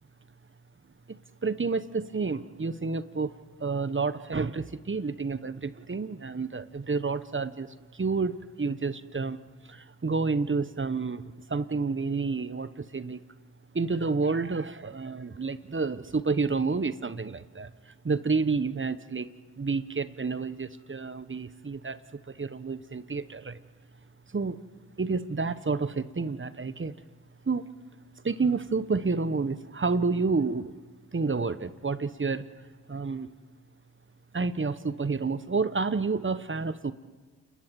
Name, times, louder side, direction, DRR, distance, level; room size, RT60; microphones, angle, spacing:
voice 1, 1.1-3.3 3.6-9.4 9.7-11.2 11.5-13.2 13.7-19.3 19.6-22.0 22.3-23.6 24.3-24.6 25.0-26.9 27.4-27.7 28.2-30.7 31.1-32.4 32.9-33.3 34.3-36.9, right 4 dB, 30° right, 13 dB, 1.2 m, -29 dB
28.5 x 21.0 x 7.7 m, 1.4 s
supercardioid pair, 50°, 40 cm